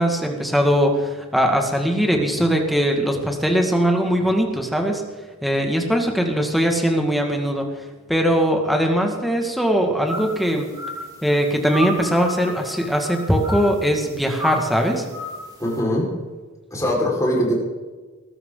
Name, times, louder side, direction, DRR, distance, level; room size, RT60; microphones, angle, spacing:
voice 1, 0.0-5.0 5.4-7.7 8.1-10.7 11.2-15.0, equal, ahead, 2 dB, 2.0 m, -20 dB
sound 1, 10.0-15.8, left 1 dB, 20° right, 5.0 m, -33 dB
voice 2, 15.6-16.1 16.7-17.5, equal, 15° left, -3 dB, 5.0 m, -21 dB
20.5 x 14.0 x 3.9 m, 1.3 s
head